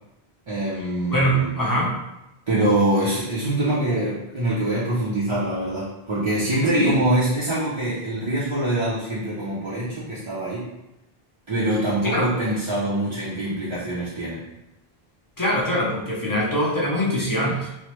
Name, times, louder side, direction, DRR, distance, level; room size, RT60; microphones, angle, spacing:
voice 1, 0.5-1.7 2.5-10.7 11.5-14.4, right 1 dB, 40° right, -9 dB, 0.5 m, -24 dB
voice 2, 1.1-2.0 6.7-7.0 12.0-12.2 15.4-17.7, equal, 25° left, -5 dB, 0.5 m, -22 dB
3.1 x 2.0 x 2.9 m, 0.92 s
omnidirectional pair, 1.0 m